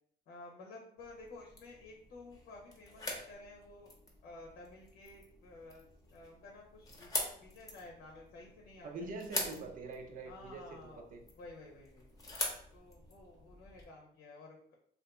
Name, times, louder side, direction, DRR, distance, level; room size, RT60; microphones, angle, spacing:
voice 1, 0.3-3.9 4.2-5.8 6.1-9.1 10.2-11.0 11.3-12.1 12.7-14.7, left 2 dB, 70° left, -1 dB, 0.8 m, -53 dB
sound 1, 1.0-13.9, left 1 dB, 20° left, 0.8 m, -45 dB
voice 2, 8.8-11.2, right 3 dB, 55° right, 5 dB, 0.6 m, -44 dB
2.6 x 2.5 x 3.5 m, 0.65 s
cardioid pair, 110°, 17 cm